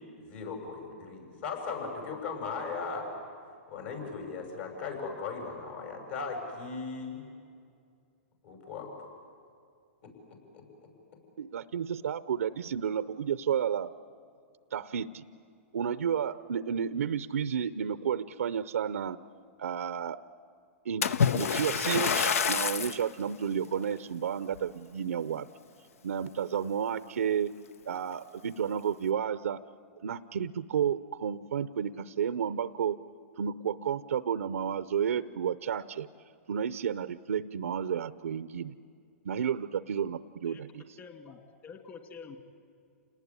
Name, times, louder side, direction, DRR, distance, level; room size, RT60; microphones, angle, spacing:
voice 1, 0.2-3.1 3.7-7.2 8.4-8.9 10.0-10.1 10.5-10.6, left 4 dB, 60° left, 3 dB, 6.8 m, -37 dB
voice 2, 11.4-13.9 14.7-15.2 15.7-19.2 19.6-20.2 20.8-21.0 21.3-25.5 26.0-27.5 27.9-29.6 30.0-33.0 33.4-36.1 36.5-38.7 39.2-40.8, right 8 dB, 90° right, 14 dB, 0.6 m, -31 dB
Splash splatter, 21.0-23.1 23.7-23.9 24.5-24.6, left 6 dB, 85° left, 0.8 m, -27 dB
voice 3, 41.0-42.4, left 5 dB, 30° left, 6 dB, 2.4 m, -47 dB
28.5 x 19.0 x 9.7 m, 2.3 s
hypercardioid pair, 135°, 8 cm